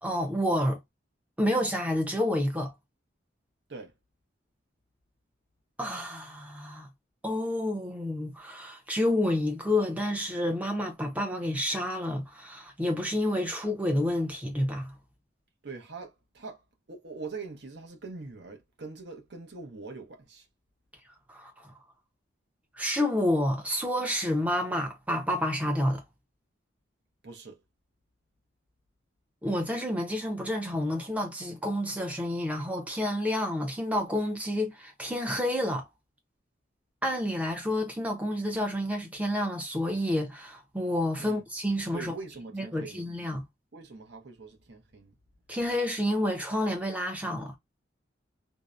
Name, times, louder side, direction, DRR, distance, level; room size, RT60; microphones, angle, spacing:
voice 1, 0.0-0.8 1.4-2.7 5.8-6.9 7.2-14.9 21.3-21.5 22.8-26.0 29.4-35.8 37.0-42.1 42.5-43.4 45.5-47.6, left 1 dB, 5° right, 0.6 m, -29 dB
voice 2, 15.6-16.6 16.9-20.5 27.2-27.6 41.2-41.5 41.9-43.1 43.7-45.1, right 4 dB, 55° right, 0.7 m, -43 dB
2.7 x 2.0 x 2.3 m
head